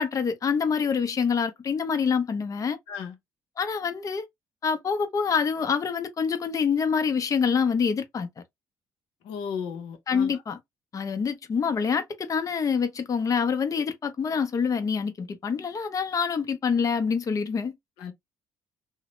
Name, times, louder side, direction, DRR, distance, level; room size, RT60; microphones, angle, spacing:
voice 1, 0.0-2.8 3.6-4.3 4.6-8.3 10.1-10.6 10.9-17.7, left 6 dB, 40° left, 0.6 m, -26 dB
voice 2, 9.2-10.3 18.0-18.1, left 7 dB, 75° left, 0.6 m, -35 dB
2.8 x 2.0 x 3.0 m
hypercardioid pair, 55°, 9 cm